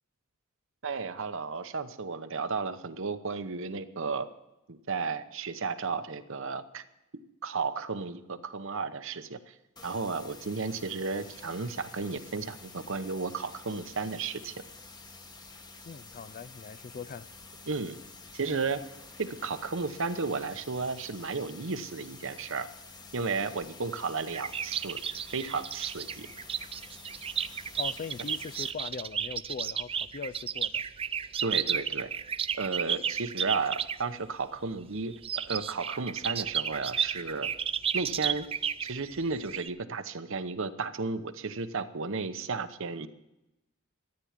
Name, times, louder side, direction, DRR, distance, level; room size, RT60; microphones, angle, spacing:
voice 1, 0.8-4.3 4.7-6.8 7.4-9.5 9.8-14.5 17.7-18.0 18.3-18.8 19.2-22.7 23.1-25.0 25.3-26.3 31.4-32.1 32.5-35.1 35.5-37.5 37.9-38.5 38.8-43.1, right 4 dB, 65° right, 0.9 m, -33 dB
sound 1, 9.8-28.7, left 3 dB, 20° left, 1.1 m, -49 dB
voice 2, 15.9-17.3 27.8-30.8, left 5 dB, 40° left, 0.4 m, -40 dB
sound 2, 24.3-34.0 35.1-39.7, right 8 dB, 25° right, 0.4 m, -33 dB
13.5 x 9.9 x 7.4 m
head